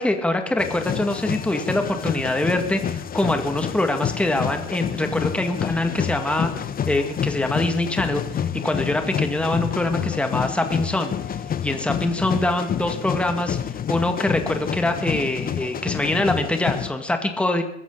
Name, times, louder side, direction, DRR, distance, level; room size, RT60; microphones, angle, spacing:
voice 1, 0.0-8.2 8.6-17.6, left 1 dB, 5° left, 5 dB, 2.1 m, -24 dB
sound 1, 0.6-16.9, left 8 dB, 25° left, 1.1 m, -28 dB
23.0 x 14.5 x 4.0 m, 0.79 s
hypercardioid pair, 95°, 36 cm